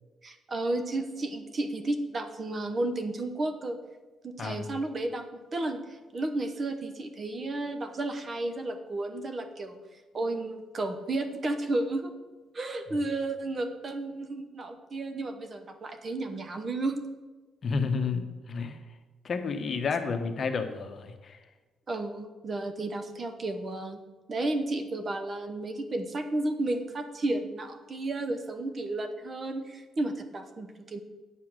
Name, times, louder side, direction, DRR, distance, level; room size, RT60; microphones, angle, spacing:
voice 1, 0.2-3.8 4.2-5.2 5.5-9.8 10.1-12.1 12.5-17.0 21.9-24.0 24.3-31.0, right 2 dB, 40° right, 7 dB, 1.0 m, -32 dB
voice 2, 17.6-18.8 19.2-21.4, left 5 dB, 50° left, 7 dB, 1.0 m, -31 dB
9.1 x 5.7 x 6.4 m, 1.2 s
cardioid pair, 90°, 0 cm